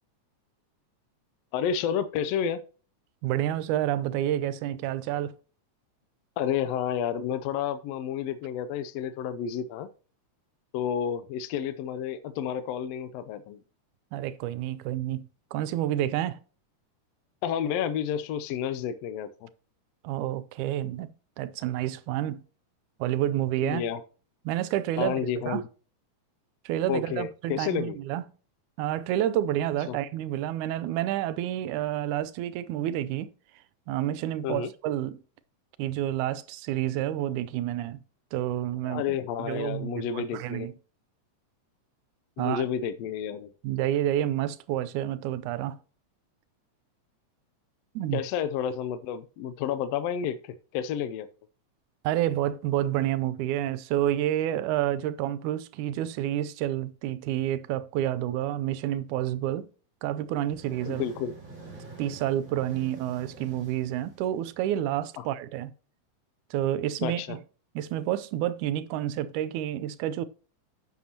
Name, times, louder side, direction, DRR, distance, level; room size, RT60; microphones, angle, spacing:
voice 1, 1.5-2.6 6.4-9.9 10.7-13.6 17.4-19.5 23.6-24.0 25.0-25.6 26.9-28.0 29.9-30.0 34.4-34.7 38.8-40.7 42.4-43.5 48.1-51.3 60.9-61.4 65.2-65.3 67.0-67.4, left 8 dB, 80° left, 1.5 m, -30 dB
voice 2, 3.2-5.4 14.1-16.4 20.0-22.4 23.0-23.8 24.5-25.2 25.5-25.6 26.7-28.2 28.8-33.3 33.9-35.2 35.8-38.0 38.3-40.7 42.4-42.7 43.6-45.8 48.0-48.2 52.0-59.7 60.0-61.0 62.0-65.7 66.5-67.4 67.8-70.3, right 12 dB, 85° right, 2.0 m, -29 dB
sound 1, 60.2-64.8, right 3 dB, 30° right, 3.4 m, -46 dB
10.5 x 7.4 x 2.9 m
omnidirectional pair, 3.5 m